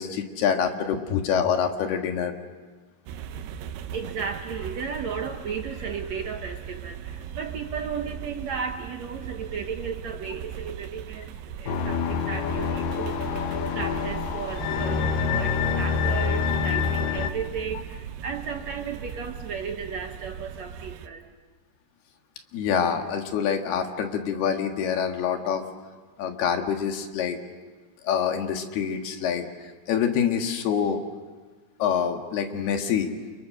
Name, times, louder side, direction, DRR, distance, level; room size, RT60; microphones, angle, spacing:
voice 1, 0.0-2.3 22.5-25.6 26.2-27.4 28.0-31.0 31.8-33.1, left 7 dB, 85° left, 4 dB, 3.8 m, -26 dB
sound 1, 3.1-21.1, right 8 dB, 90° right, 3.0 m, -38 dB
voice 2, 3.9-13.3 13.7-21.3, right 6 dB, 60° right, 4 dB, 1.9 m, -35 dB
sound 2, 11.7-17.3, left 6 dB, 65° left, 2.8 m, -26 dB
29.5 x 28.0 x 6.5 m, 1.3 s
omnidirectional pair, 4.4 m